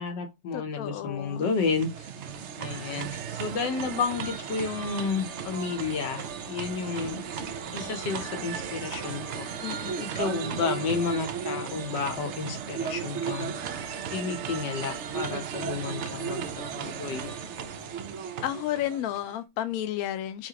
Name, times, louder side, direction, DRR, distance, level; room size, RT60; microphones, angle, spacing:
voice 1, 0.0-2.1 2.6-7.2 7.7-9.5 10.0-13.5 14.1-16.4 16.7-17.3, left 5 dB, 85° left, 1.5 m, -31 dB
voice 2, 0.5-1.5 9.6-10.0 18.4-20.5, left 12 dB, 70° left, 0.9 m, -32 dB
sound 1, 1.3-19.3, right 6 dB, 90° right, 0.6 m, -35 dB
5.8 x 2.4 x 2.8 m
omnidirectional pair, 1.9 m